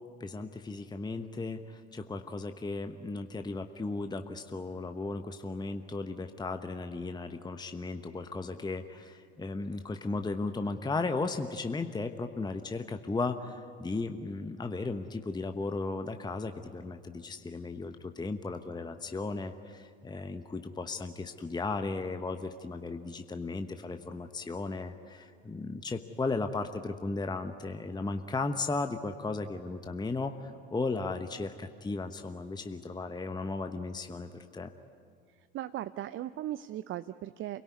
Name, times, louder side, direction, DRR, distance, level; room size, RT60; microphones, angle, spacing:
voice 1, 0.2-34.7, left 3 dB, 15° left, 7 dB, 1.1 m, -35 dB
voice 2, 35.5-37.6, right 13 dB, 40° right, 13 dB, 0.6 m, -37 dB
28.0 x 18.0 x 9.6 m, 2.3 s
figure-of-eight pair, 65°, 33 cm